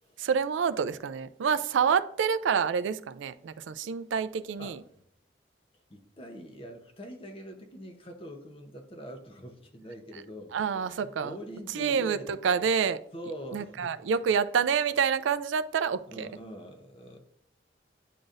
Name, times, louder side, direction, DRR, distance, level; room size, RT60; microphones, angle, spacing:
voice 1, 0.2-4.8 10.5-11.3 11.7-13.0 13.5-16.3, right 6 dB, 90° right, 0.4 m, -27 dB
voice 2, 5.9-10.5 10.8-12.3 13.1-14.0 16.1-17.2, equal, 30° left, 0.8 m, -43 dB
10.0 x 3.9 x 2.5 m
head